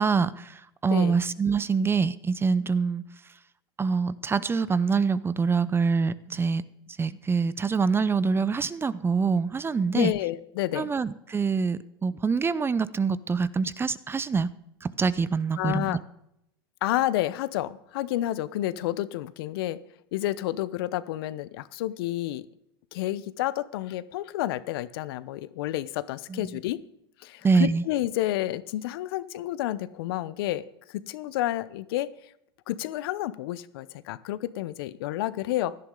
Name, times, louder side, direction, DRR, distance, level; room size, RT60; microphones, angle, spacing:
voice 1, 0.0-3.0 3.8-6.6 7.0-10.1 10.8-14.5 14.8-16.0 26.3-26.6 27.4-27.8, right 5 dB, 20° right, 18 dB, 0.6 m, -25 dB
voice 2, 0.9-1.2 9.9-10.9 15.6-16.0 16.8-19.8 20.1-22.5 22.9-26.8 27.2-30.6 30.9-32.1 32.7-35.8, left 14 dB, 70° left, 16 dB, 0.8 m, -30 dB
17.0 x 11.5 x 3.9 m, 0.79 s
hypercardioid pair, 95°, 13 cm